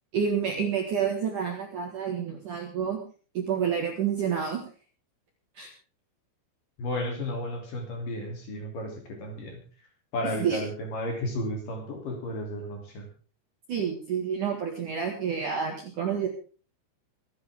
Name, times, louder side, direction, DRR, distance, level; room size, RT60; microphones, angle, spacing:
voice 1, 0.1-3.0 3.3-4.6 5.6-5.7 10.2-10.6 13.7-16.3, right 7 dB, 55° right, 3 dB, 2.4 m, -29 dB
voice 2, 6.8-9.6 10.1-13.1, left 1 dB, 45° left, 2 dB, 4.2 m, -33 dB
24.5 x 10.0 x 3.6 m, 0.38 s
omnidirectional pair, 5.7 m